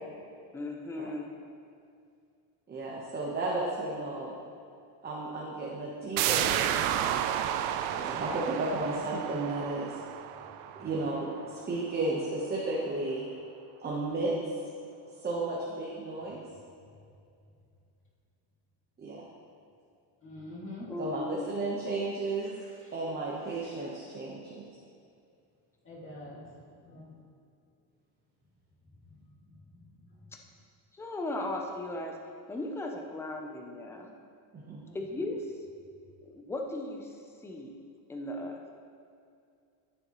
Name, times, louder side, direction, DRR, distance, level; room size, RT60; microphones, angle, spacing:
voice 1, 0.5-1.3 20.9-21.5 30.9-32.1 32.5-34.1 34.9-35.4 36.3-37.1 37.4-37.8 38.1-38.6, left 2 dB, 5° left, 2 dB, 0.5 m, -36 dB
voice 2, 2.7-4.3 5.0-7.1 8.0-9.9 10.8-13.2 13.8-14.6 15.2-16.4 19.0-19.2 21.0-22.5 22.9-24.5 34.5-34.8, right 2 dB, 20° right, -5 dB, 1.1 m, -33 dB
sound 1, 6.2-11.6 12.0-12.1, right 10 dB, 80° right, 0.7 m, -31 dB
voice 3, 20.2-20.9 22.4-23.0 23.6-23.7 25.8-26.4 26.8-27.1 29.7-29.9 34.9-35.3, left 1 dB, 25° left, -5 dB, 2.1 m, -46 dB
13.5 x 6.9 x 3.1 m, 2.4 s
cardioid pair, 155°, 47 cm